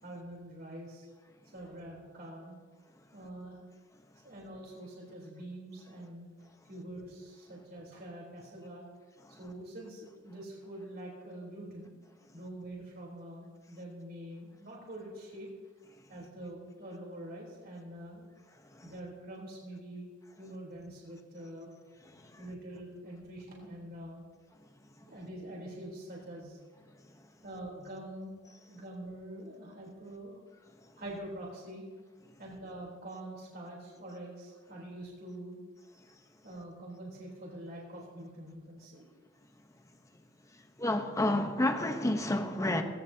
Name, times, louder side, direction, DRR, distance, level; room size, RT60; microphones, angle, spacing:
voice 1, 0.0-1.1 1.5-2.6 3.1-3.6 4.2-6.3 6.7-8.8 9.4-11.9 12.3-15.5 16.1-18.3 18.8-20.1 20.4-21.7 22.4-24.3 25.1-26.6 27.4-28.4 28.7-30.4 31.0-31.9 32.4-35.6 36.4-39.1, right 1 dB, 50° right, -3 dB, 3.8 m, -45 dB
voice 2, 40.8-42.8, left 1 dB, 15° left, 5 dB, 1.1 m, -29 dB
18.5 x 17.0 x 2.9 m, 1.4 s
head